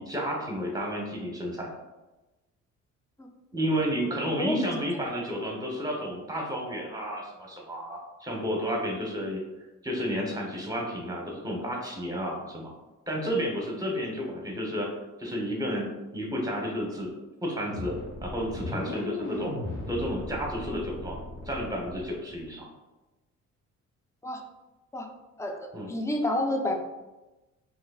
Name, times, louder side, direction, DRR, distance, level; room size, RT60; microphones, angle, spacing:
voice 1, 0.0-1.7 3.5-9.4 9.8-12.7 13.1-14.9 15.2-17.9 18.2-19.5 19.9-21.2 21.5-22.7 25.7-25.9, equal, 10° right, 0 dB, 0.9 m, -31 dB
sound 1, 17.7-22.5, left 2 dB, 75° left, 1.1 m, -36 dB
voice 2, 25.4-26.8, left 1 dB, 10° left, 4 dB, 0.5 m, -29 dB
3.9 x 3.1 x 2.3 m, 1.1 s
cardioid pair, 90°, 30 cm